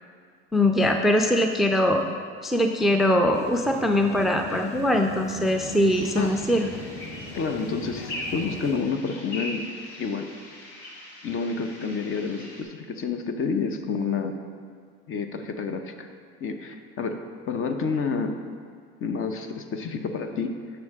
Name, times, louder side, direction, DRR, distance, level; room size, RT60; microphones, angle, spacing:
voice 1, 0.5-2.1 2.4-6.7, left 1 dB, ahead, 4 dB, 0.4 m, -22 dB
sound 1, 3.3-8.8, left 2 dB, 20° left, 1.5 m, -40 dB
sound 2, 5.8-12.6, left 1 dB, 70° left, 1.7 m, -40 dB
voice 2, 7.3-9.7 10.0-10.3 11.2-14.4 15.1-16.1 16.4-18.4 19.0-20.6, left 5 dB, 40° left, 7 dB, 0.8 m, -29 dB
9.5 x 5.9 x 3.6 m, 2.2 s
hypercardioid pair, 80°, 32 cm